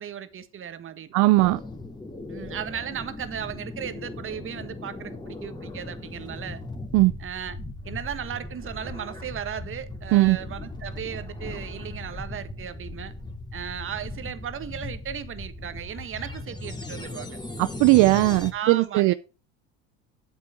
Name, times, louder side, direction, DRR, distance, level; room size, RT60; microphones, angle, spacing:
voice 1, 0.0-1.3 2.3-6.6 7.2-7.6 7.8-13.1 13.5-17.4 18.5-19.1, right 8 dB, 40° right, 1.5 m, -36 dB
voice 2, 1.1-1.6 6.9-7.1 10.1-10.4 17.6-19.1, right 20 dB, 65° right, 0.5 m, -18 dB
sound 1, 1.4-18.5, left 2 dB, 15° left, 2.4 m, -38 dB
8.6 x 7.4 x 5.1 m
supercardioid pair, 85°, 32 cm